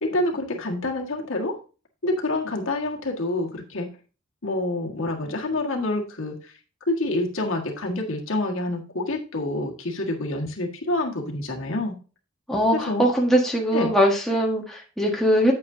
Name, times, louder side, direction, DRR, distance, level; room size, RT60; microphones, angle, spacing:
voice 1, 0.0-1.6 2.0-3.9 4.4-6.5 6.9-11.9 12.7-13.0 13.7-13.9, left 2 dB, 75° left, 0 dB, 1.7 m, -27 dB
voice 2, 12.5-15.5, equal, ahead, -2 dB, 1.4 m, -21 dB
8.5 x 8.4 x 2.7 m, 0.34 s
head